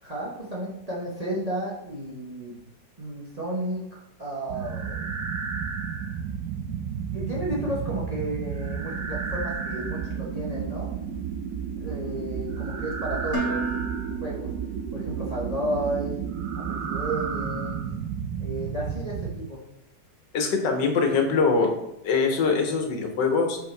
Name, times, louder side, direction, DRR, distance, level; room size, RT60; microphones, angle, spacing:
voice 1, 0.0-2.6 3.0-5.1 7.1-10.9 11.8-13.6 14.2-14.5 14.9-16.1 16.5-17.8 18.4-19.6, right 1 dB, 25° right, -4 dB, 1.0 m, -32 dB
sound 1, 4.5-19.4, right 7 dB, 70° right, 1.2 m, -32 dB
Dishes pots and pans, 13.3-15.4, right 3 dB, 45° left, 1.3 m, -33 dB
voice 2, 20.3-21.7 22.0-23.6, left 4 dB, 75° left, 4 dB, 1.6 m, -23 dB
5.7 x 4.7 x 4.5 m, 0.82 s
omnidirectional pair, 1.9 m